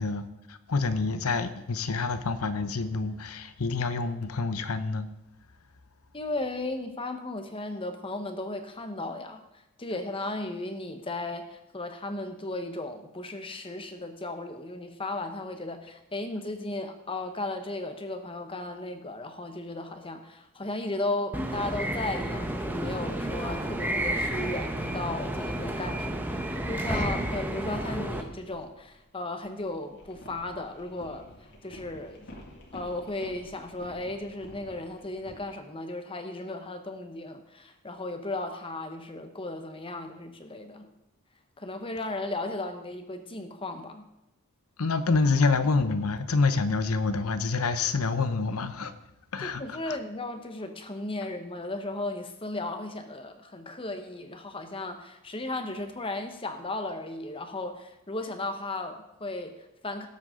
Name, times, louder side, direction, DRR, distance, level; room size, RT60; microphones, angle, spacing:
voice 1, 0.0-5.1 44.8-48.9 49.3-50.0, left 4 dB, 75° left, 0.8 m, -27 dB
voice 2, 6.1-26.2 26.7-32.3 32.7-40.9 41.6-44.0 49.4-60.1, left 2 dB, 25° left, 1.1 m, -35 dB
sound 1, 21.3-28.2, right 1 dB, 10° right, 0.9 m, -31 dB
sound 2, 27.3-35.4, left 1 dB, 50° left, 2.4 m, -51 dB
18.0 x 8.1 x 3.8 m
head